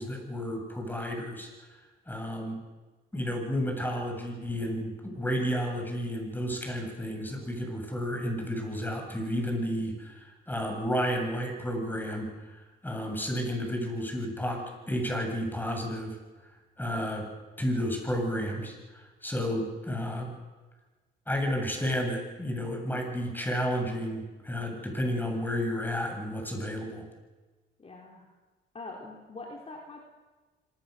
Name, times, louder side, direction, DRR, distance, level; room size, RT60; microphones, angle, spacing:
voice 1, 0.0-1.8 2.1-2.6 3.1-16.2 16.8-17.3 17.6-20.3 21.3-27.1, equal, 10° left, 2 dB, 8.0 m, -32 dB
voice 2, 27.8-28.3 28.7-30.0, left 2 dB, 30° left, 0 dB, 3.8 m, -43 dB
26.5 x 20.0 x 6.8 m, 1.2 s
cardioid pair, 90°, 20 cm